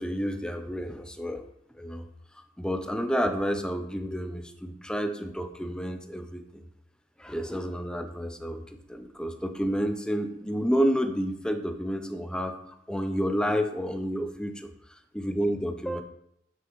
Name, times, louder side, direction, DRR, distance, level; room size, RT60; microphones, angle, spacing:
voice 1, 0.0-1.4 1.8-2.1 2.6-6.6 7.2-14.7 15.1-16.0, equal, 5° left, 6 dB, 0.6 m, -30 dB
9.2 x 5.2 x 3.1 m, 0.75 s
head